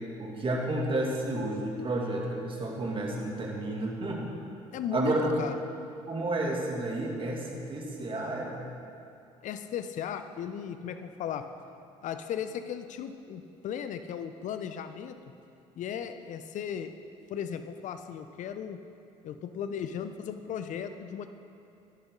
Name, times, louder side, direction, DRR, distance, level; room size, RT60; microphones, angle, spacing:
voice 1, 0.2-4.3 4.9-5.3 6.1-8.5, right 2 dB, 35° right, -1 dB, 2.5 m, -31 dB
voice 2, 4.7-5.6 9.4-11.5 12.0-15.2 15.8-16.9 17.3-18.8 19.2-21.3, left 8 dB, 55° left, 9 dB, 0.8 m, -36 dB
13.5 x 11.0 x 3.9 m, 2.7 s
hypercardioid pair, 55°, 16 cm